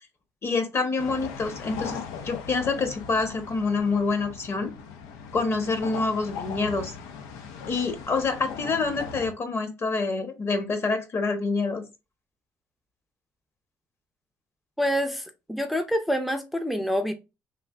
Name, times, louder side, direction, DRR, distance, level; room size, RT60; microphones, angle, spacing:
voice 1, 0.4-4.7 5.3-6.9 7.7-11.8, left 4 dB, 45° left, 0.9 m, -27 dB
sound 1, 1.0-9.3, left 6 dB, 90° left, 0.5 m, -39 dB
voice 2, 14.8-17.1, equal, ahead, 0.5 m, -27 dB
3.2 x 2.5 x 2.3 m
supercardioid pair, 75°, 6 cm